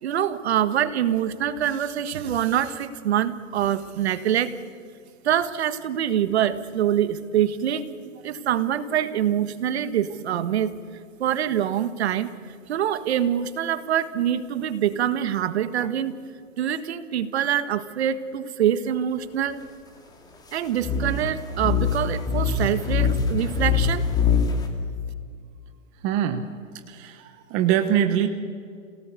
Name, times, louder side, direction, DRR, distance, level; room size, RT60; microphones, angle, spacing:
voice 1, 0.0-4.6 5.2-10.7 11.2-12.3 12.7-16.1 16.6-19.6 20.5-24.0, right 10 dB, 50° right, 12 dB, 1.6 m, -25 dB
sound 1, 20.8-24.7, left 5 dB, 10° left, 1.9 m, -23 dB
voice 2, 26.0-26.5 26.9-28.3, right 10 dB, 20° right, 8 dB, 0.8 m, -23 dB
28.5 x 18.0 x 8.3 m, 2.3 s
hypercardioid pair, 155°, 40 cm